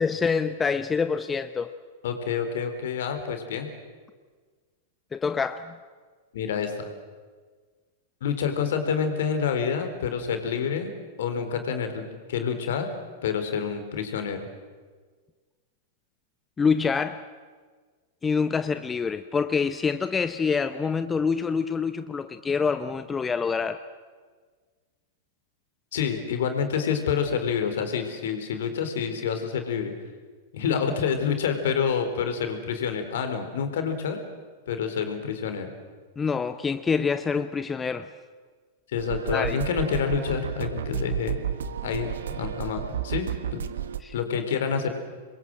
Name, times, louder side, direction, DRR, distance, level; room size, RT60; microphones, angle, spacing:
voice 1, 0.0-1.7 5.1-5.8 16.6-17.2 18.2-23.8 36.2-38.1 39.3-39.6 44.0-44.1, left 5 dB, 15° left, 11 dB, 0.9 m, -26 dB
voice 2, 2.0-3.7 6.3-6.9 8.2-10.9 11.2-12.9 13.2-14.4 25.9-29.9 30.5-34.2 34.7-35.7 38.9-41.4 41.8-43.6 44.1-44.9, left 7 dB, 65° left, 7 dB, 3.8 m, -28 dB
sound 1, 39.0-44.0, right 9 dB, 70° right, 1.3 m, -32 dB
27.0 x 22.0 x 7.8 m, 1.5 s
figure-of-eight pair, 95°, 0 cm